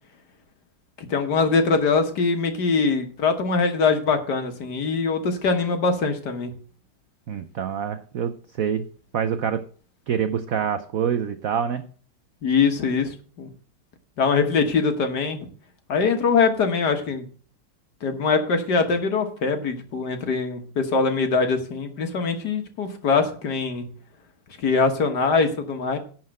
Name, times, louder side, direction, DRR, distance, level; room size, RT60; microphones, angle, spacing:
voice 1, 1.0-6.5 12.4-13.5 14.2-15.5 15.9-17.2 18.0-23.9 24.6-26.0, left 4 dB, 55° left, 7 dB, 1.7 m, -22 dB
voice 2, 7.3-8.9 9.1-9.6 10.1-11.8, right 8 dB, 75° right, 10 dB, 0.7 m, -26 dB
11.5 x 4.5 x 7.7 m, 0.43 s
omnidirectional pair, 2.3 m